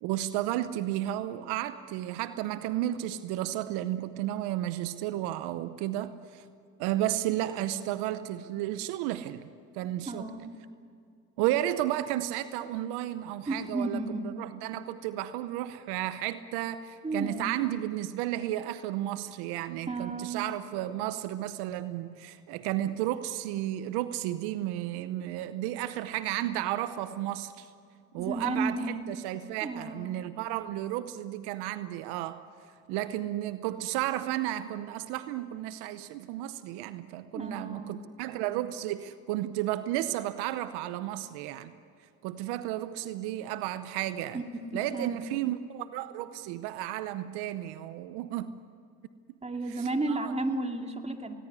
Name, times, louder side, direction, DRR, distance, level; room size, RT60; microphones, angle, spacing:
voice 1, 0.0-6.4 6.8-9.5 9.7-10.2 11.4-27.7 28.1-32.4 32.9-41.7 42.2-44.4 44.7-48.6 49.7-50.2, right 13 dB, 75° right, 13 dB, 0.9 m, -33 dB
voice 2, 10.1-10.5 13.5-14.3 17.0-17.5 19.9-20.5 28.2-29.0 29.6-30.1 37.3-38.0 44.3-45.2 49.4-51.3, right 2 dB, 15° right, 4 dB, 2.5 m, -33 dB
20.0 x 19.0 x 9.6 m, 2.3 s
hypercardioid pair, 65°, 39 cm